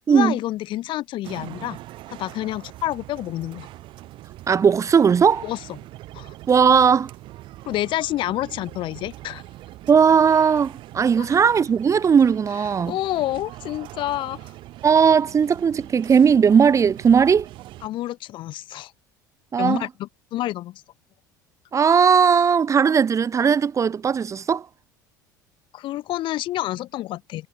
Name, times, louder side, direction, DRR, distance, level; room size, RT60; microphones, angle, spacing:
voice 1, 0.1-1.8 2.1-3.7 5.4-5.6 6.1-6.3 7.7-9.4 11.2-11.3 12.9-14.4 17.8-18.9 19.6-20.8 25.7-27.5, left 15 dB, 55° left, 7.7 m, -28 dB
sound 1, 1.2-17.9, right 16 dB, 55° right, 6.0 m, -42 dB
voice 2, 4.5-5.4 6.5-7.1 9.9-13.0 14.8-17.5 19.5-19.8 21.7-24.6, right 6 dB, 30° right, 1.8 m, -17 dB
hypercardioid pair, 70°, 10 cm